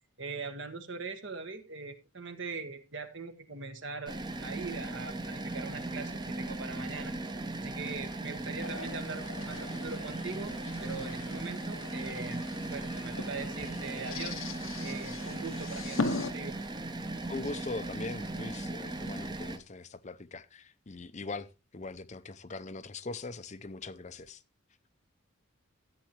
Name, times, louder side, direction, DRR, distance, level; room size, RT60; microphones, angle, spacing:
voice 1, 0.2-4.2 4.4-7.1 7.6-12.4 12.7-14.4 14.8-16.5, right 4 dB, 55° right, 1.5 m, -41 dB
sound 1, 4.1-19.6, right 2 dB, 20° right, 0.9 m, -38 dB
sound 2, 8.6-16.3, left 4 dB, 65° left, 0.8 m, -40 dB
voice 2, 17.3-21.5 21.7-24.4, left 3 dB, 35° left, 0.6 m, -41 dB
13.5 x 8.9 x 3.0 m
head